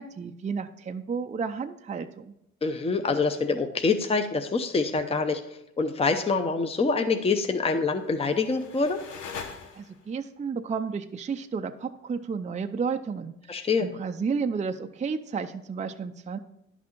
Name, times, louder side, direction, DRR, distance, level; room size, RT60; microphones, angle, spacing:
voice 1, 0.0-2.3 9.8-16.4, right 5 dB, 25° right, 7 dB, 0.5 m, -32 dB
voice 2, 2.6-5.4 5.8-9.0 13.5-13.9, left 4 dB, 20° left, 6 dB, 0.7 m, -25 dB
sound 1, 7.8-10.2, left 5 dB, 90° left, 1.1 m, -42 dB
10.5 x 6.0 x 4.5 m, 0.81 s
cardioid pair, 90°, 30 cm